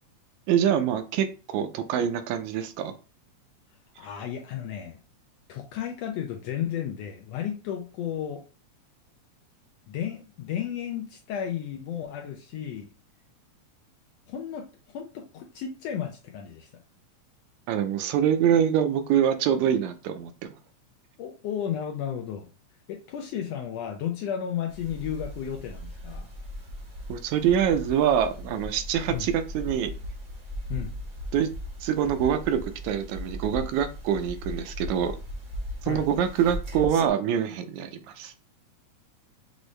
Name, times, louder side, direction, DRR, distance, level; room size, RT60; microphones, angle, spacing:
voice 1, 0.5-2.9 17.7-20.5 27.1-29.9 31.3-31.5 31.8-35.2 35.8-38.3, right 9 dB, 80° right, 8 dB, 1.9 m, -25 dB
voice 2, 4.0-5.0 5.5-8.4 9.9-12.9 14.3-16.7 21.2-22.5 22.9-26.3 29.1-29.2 30.7-30.9 35.8-36.1, left 9 dB, 75° left, 2 dB, 1.6 m, -33 dB
sound 1, 24.7-37.1, equal, 55° right, 0.8 m, -38 dB
6.2 x 2.6 x 3.2 m, 0.33 s
omnidirectional pair, 3.4 m